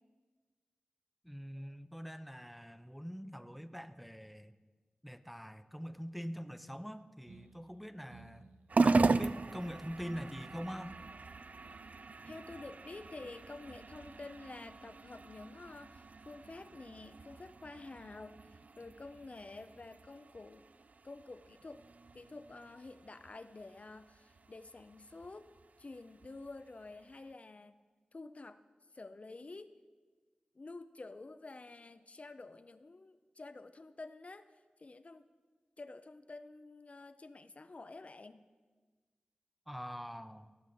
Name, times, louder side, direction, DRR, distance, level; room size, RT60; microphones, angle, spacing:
voice 1, 1.2-4.6 5.0-11.0 39.7-40.5, equal, ahead, 11 dB, 0.6 m, -44 dB
sound 1, 7.3-14.8, right 4 dB, 80° right, 0.7 m, -63 dB
sound 2, 8.7-27.3, right 3 dB, 55° right, 0.3 m, -38 dB
voice 2, 12.2-20.7 21.0-21.8 22.1-25.5 25.8-27.8 28.1-28.6 28.9-29.8 30.5-34.5 34.8-35.2 35.8-38.5, left 3 dB, 50° left, 11 dB, 0.4 m, -49 dB
17.5 x 6.6 x 3.8 m, 1.4 s
cardioid pair, 45°, 3 cm